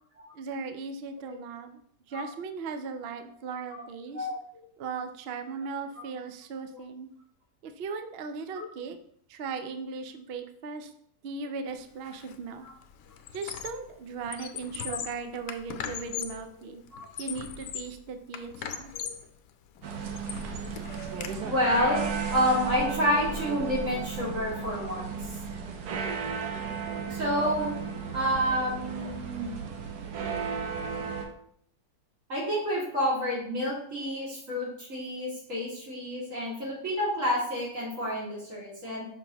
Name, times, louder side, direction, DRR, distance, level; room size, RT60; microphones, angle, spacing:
voice 1, 0.3-1.8 2.1-4.3 4.8-7.1 7.6-9.0 9.3-10.9 11.2-12.7 13.3-16.8 17.2-18.9, right 5 dB, 65° right, 8 dB, 0.6 m, -38 dB
voice 2, 4.1-4.6 8.5-8.7 12.6-12.7 14.9-15.0 16.1-16.2 16.9-17.1 18.9-19.1 21.4-25.2 27.1-27.7 28.1-29.5 32.3-39.1, equal, 50° right, -5 dB, 2.7 m, -29 dB
Squeak, 12.1-12.3 12.7-13.9 14.2-16.5 16.9-18.0 18.3-19.3 19.8-21.3, left 8 dB, 70° left, 0.9 m, -39 dB
sound 1, 19.8-31.2, right 6 dB, 85° right, 1.4 m, -34 dB
5.9 x 5.7 x 2.9 m, 0.66 s
omnidirectional pair, 1.7 m